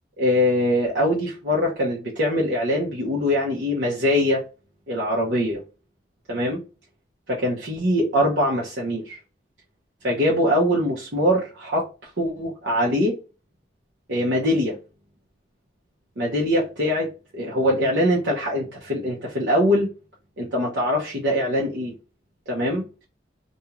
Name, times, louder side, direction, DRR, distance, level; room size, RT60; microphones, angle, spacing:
voice 1, 0.2-4.4 4.9-5.6 6.3-6.6 7.3-9.2 10.0-11.8 12.2-13.2 14.1-14.8 16.2-19.9 20.4-21.9 22.5-22.8, left 1 dB, 75° right, 0.8 m, -22 dB
2.6 x 2.3 x 2.9 m
head